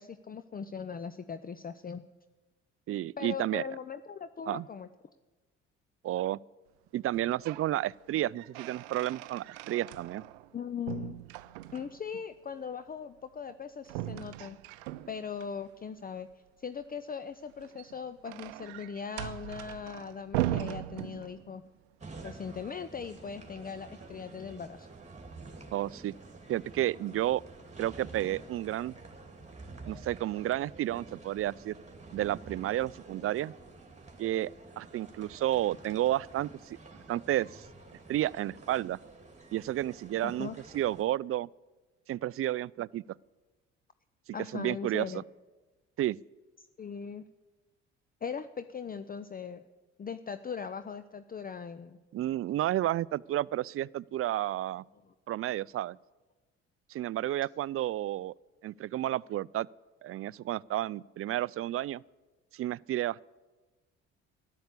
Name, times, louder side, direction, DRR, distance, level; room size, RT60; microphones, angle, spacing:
voice 1, 0.0-2.0 3.2-4.9 10.5-11.2 11.7-14.6 15.1-16.3 16.6-21.6 22.2-24.9 40.2-40.5 44.3-45.3 46.8-47.3 48.2-49.6 50.0-52.0 55.1-55.2, left 6 dB, 25° left, 11 dB, 0.6 m, -39 dB
voice 2, 2.9-3.6 4.5-4.7 6.0-6.4 6.9-10.2 25.7-26.1 26.5-27.4 27.8-29.0 29.8-31.7 32.1-33.5 34.2-36.8 37.1-37.6 38.1-39.0 39.5-41.5 42.1-43.0 44.5-45.2 46.0-46.2 52.1-54.8 55.3-56.0 56.9-58.3 58.6-59.7 60.0-62.0 62.5-63.3, right 13 dB, 45° right, 23 dB, 0.4 m, -31 dB
sound 1, 7.1-7.7 8.1-10.5 10.9-12.1 13.9-15.5 17.5-21.7, right 15 dB, 90° right, 0.6 m, -38 dB
sound 2, 22.0-41.0, right 3 dB, 20° right, 2.7 m, -49 dB
13.0 x 11.5 x 8.3 m, 1.2 s
supercardioid pair, 60°, 32 cm